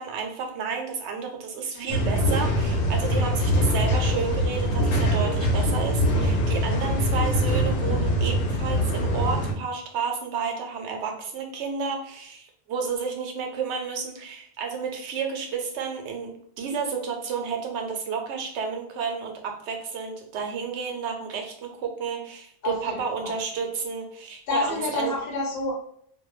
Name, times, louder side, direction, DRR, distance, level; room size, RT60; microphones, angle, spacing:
voice 1, 0.0-16.3 16.6-25.1, right 5 dB, 80° right, 2 dB, 0.9 m, -31 dB
sound 1, 1.9-9.5, equal, 90° left, 0.9 m, -23 dB
voice 2, 22.6-23.4 24.5-25.7, left 3 dB, 65° left, -3 dB, 1.0 m, -29 dB
2.1 x 2.1 x 3.0 m, 0.65 s
omnidirectional pair, 1.2 m